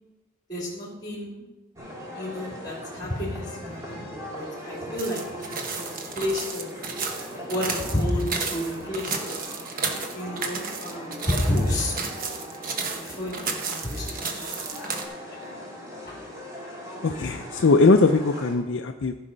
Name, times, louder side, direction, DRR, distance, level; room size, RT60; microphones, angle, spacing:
voice 1, 0.5-1.4 2.1-6.7 7.5-9.4 10.1-12.0 12.9-14.6 15.3-15.6 16.1-16.2, left 1 dB, 20° left, -4 dB, 2.5 m, -30 dB
sound 1, 1.8-18.5, equal, 15° right, 2.2 m, -39 dB
sound 2, 5.0-15.0, right 5 dB, 45° right, 1.1 m, -33 dB
voice 2, 17.0-19.1, left 3 dB, 60° left, 5 dB, 0.5 m, -20 dB
14.5 x 5.6 x 5.1 m, 1.1 s
head